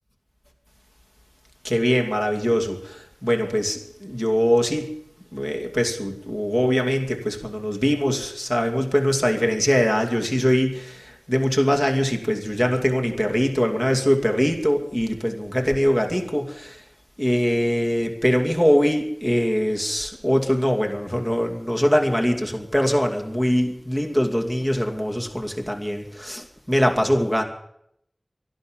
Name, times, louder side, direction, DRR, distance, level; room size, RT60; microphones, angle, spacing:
voice 1, 1.6-4.9 5.3-16.8 17.2-27.4, equal, ahead, 3 dB, 2.6 m, -22 dB
12.5 x 11.5 x 8.9 m, 0.74 s
wide cardioid pair, 40°, 0 cm